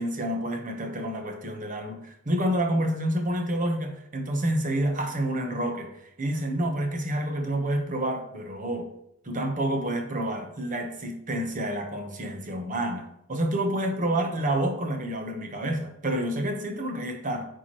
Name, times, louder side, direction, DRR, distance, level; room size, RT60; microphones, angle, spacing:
voice 1, 0.0-8.9 9.2-13.0 13.3-17.5, right 1 dB, 40° right, 4 dB, 1.0 m, -28 dB
8.7 x 4.6 x 3.0 m, 0.80 s
head